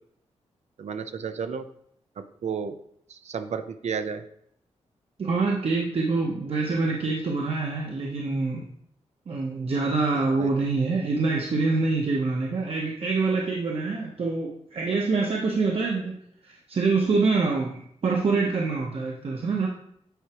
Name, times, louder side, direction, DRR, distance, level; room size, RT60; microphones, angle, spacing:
voice 1, 0.8-1.6 2.2-2.8 3.1-4.2 10.1-10.5, right 6 dB, 70° right, 9 dB, 0.6 m, -32 dB
voice 2, 5.2-8.7 9.3-16.2 16.4-19.7, right 3 dB, 55° right, -1 dB, 1.0 m, -25 dB
9.2 x 4.7 x 3.0 m, 0.70 s
wide cardioid pair, 105°, 12 cm